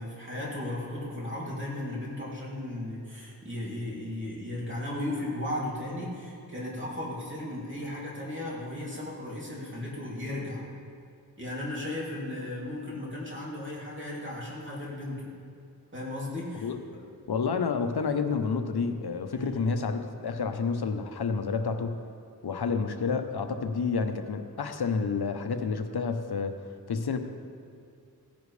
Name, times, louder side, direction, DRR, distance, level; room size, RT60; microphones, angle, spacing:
voice 1, 0.0-10.6 11.4-15.3 15.9-17.0 19.3-19.6, left 1 dB, 30° right, -6 dB, 2.8 m, -36 dB
voice 2, 17.3-22.0 22.4-26.6 26.9-27.2, left 5 dB, 75° left, 7 dB, 0.9 m, -29 dB
16.5 x 10.5 x 3.3 m, 2.4 s
wide cardioid pair, 85°, 38 cm